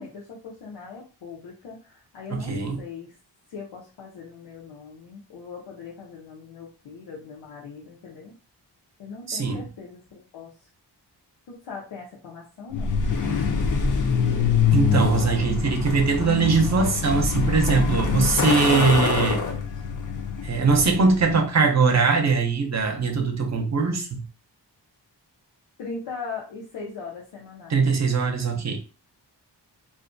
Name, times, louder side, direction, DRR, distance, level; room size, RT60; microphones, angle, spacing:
voice 1, 0.0-3.1 3.5-8.3 9.0-10.7 11.5-12.9 25.8-27.8, left 4 dB, 90° left, 0.7 m, -40 dB
voice 2, 2.3-2.8 9.3-9.6 14.7-19.4 20.4-24.2 27.7-28.8, right 4 dB, 40° right, 0.5 m, -21 dB
Truck, 12.7-21.4, left 6 dB, 50° left, 0.5 m, -24 dB
2.4 x 2.1 x 2.5 m
wide cardioid pair, 105°, 42 cm